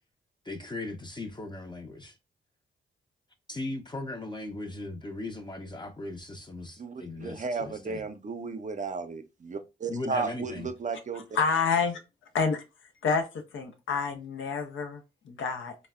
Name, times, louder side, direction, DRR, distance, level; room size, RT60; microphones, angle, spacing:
voice 1, 0.4-2.1 3.5-8.0 9.9-10.7, left 2 dB, 20° left, 0.6 m, -38 dB
voice 2, 6.8-11.3, right 4 dB, 40° right, 0.5 m, -34 dB
voice 3, 11.3-12.0 12.3-12.6 13.0-13.3 13.5-15.8, left 5 dB, 80° left, 0.6 m, -28 dB
3.3 x 2.0 x 2.3 m
cardioid pair, 55°, 20 cm